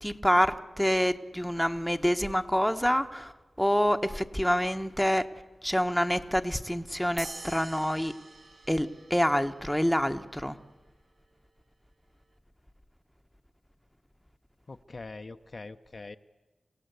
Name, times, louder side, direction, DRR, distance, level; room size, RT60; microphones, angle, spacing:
voice 1, 0.0-3.3 3.6-5.3 5.6-8.1 8.7-10.6, equal, ahead, 7 dB, 1.0 m, -27 dB
sound 1, 7.2-9.9, right 3 dB, 60° right, 1.5 m, -45 dB
voice 2, 14.7-16.2, left 3 dB, 45° left, 8 dB, 0.7 m, -43 dB
27.5 x 17.0 x 8.1 m, 1.2 s
cardioid pair, 65°, 0 cm